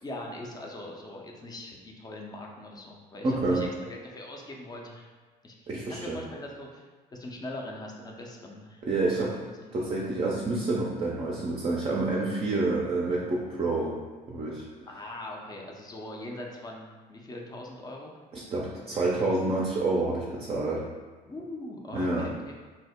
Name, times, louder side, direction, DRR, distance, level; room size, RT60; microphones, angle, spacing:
voice 1, 0.0-5.1 5.4-6.9 7.1-9.7 14.9-18.1 21.2-22.6, left 1 dB, 20° left, 0 dB, 0.5 m, -41 dB
voice 2, 3.2-3.6 5.7-6.2 8.8-9.4 9.7-14.0 14.3-14.6 18.3-20.9 21.9-22.3, right 2 dB, 30° right, -3 dB, 0.5 m, -28 dB
2.8 x 2.0 x 3.4 m, 1.3 s
hypercardioid pair, 65°, 21 cm